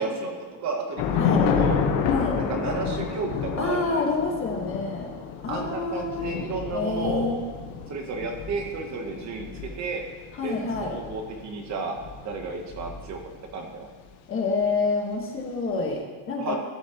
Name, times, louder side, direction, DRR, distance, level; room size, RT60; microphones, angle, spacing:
voice 1, 0.0-1.8 2.4-4.0 5.5-7.4 7.9-10.0 10.4-12.0 12.2-13.2 13.5-13.9 16.4-16.6, right 4 dB, 40° right, 3 dB, 1.0 m, -32 dB
Thunder / Rain, 1.0-13.5, left 7 dB, 75° left, 1.3 m, -30 dB
voice 2, 3.6-5.1 5.4-6.4 6.7-7.4 10.3-10.9 14.3-16.6, left 4 dB, 30° left, 0 dB, 1.4 m, -28 dB
15.0 x 7.0 x 3.0 m, 1.4 s
cardioid pair, 165°, 45 cm